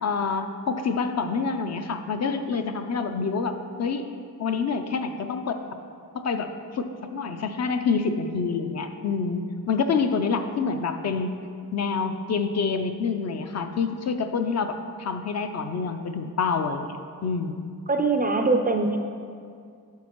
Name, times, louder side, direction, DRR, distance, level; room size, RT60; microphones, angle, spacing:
voice 1, 0.0-4.1 4.4-5.6 6.1-11.3 11.7-17.0 17.2-17.7, left 5 dB, 45° left, 7 dB, 0.4 m, -27 dB
voice 2, 17.9-19.0, right 3 dB, 25° right, 4 dB, 0.3 m, -22 dB
10.5 x 6.4 x 3.0 m, 2.3 s
wide cardioid pair, 145°, 38 cm